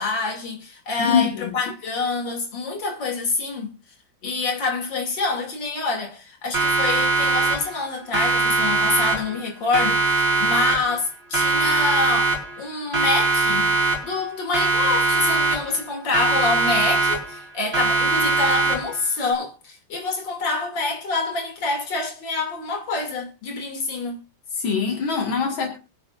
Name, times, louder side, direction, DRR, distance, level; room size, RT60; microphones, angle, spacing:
voice 1, 0.0-3.7 4.2-24.2, left 3 dB, 70° left, 3.3 m, -26 dB
voice 2, 1.0-1.5 24.5-25.8, left 6 dB, 85° left, 2.6 m, -23 dB
Siren, 6.5-7.9 8.1-9.5 9.7-11.1 11.3-12.7 12.9-14.3 14.5-15.9 16.1-17.5 17.7-19.1, right 3 dB, 30° right, 5.4 m, -21 dB
24.5 x 8.5 x 2.5 m
omnidirectional pair, 2.1 m